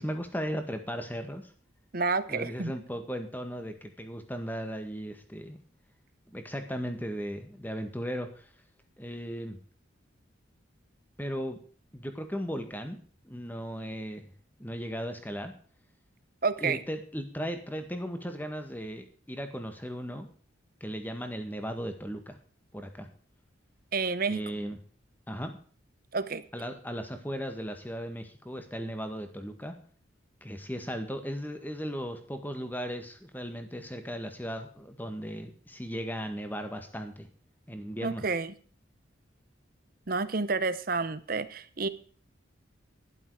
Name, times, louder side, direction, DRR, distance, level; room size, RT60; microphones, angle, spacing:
voice 1, 0.0-1.5 2.3-5.6 6.3-8.5 9.0-9.6 11.2-11.6 11.9-13.0 13.2-14.3 14.6-15.5 16.6-20.3 20.8-22.4 22.7-23.1 24.3-24.8 25.3-25.6 26.5-29.7 30.4-37.3 37.7-38.2, equal, 10° left, 7 dB, 1.7 m, -36 dB
voice 2, 1.9-2.7 16.4-16.8 23.9-24.4 26.1-26.4 38.0-38.5 40.1-41.9, right 4 dB, 45° right, 14 dB, 0.9 m, -29 dB
12.0 x 11.5 x 4.8 m, 0.43 s
head